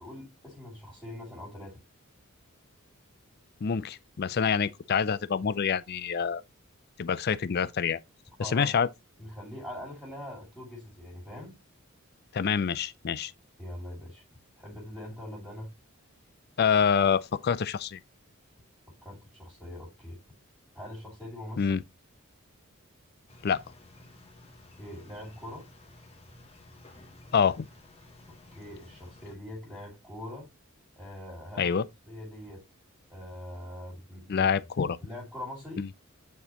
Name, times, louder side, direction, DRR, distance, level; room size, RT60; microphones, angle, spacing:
voice 1, 0.0-1.8 8.4-8.7 9.2-11.6 13.6-14.2 14.6-15.7 19.0-20.2 20.7-21.8 24.8-25.7 28.5-30.5 31.0-31.7 32.1-32.6 33.1-34.5 35.0-35.9, left 1 dB, 5° right, 2.6 m, -42 dB
voice 2, 3.6-6.4 7.0-8.0 8.4-8.9 12.3-13.3 16.6-18.0 21.6-21.8 23.4-23.6 27.3-27.7 31.6-31.8 34.3-35.0 35.8-35.9, left 6 dB, 45° left, 0.4 m, -26 dB
sound 1, 23.3-29.4, left 2 dB, 30° left, 1.3 m, -54 dB
9.3 x 4.3 x 2.9 m
head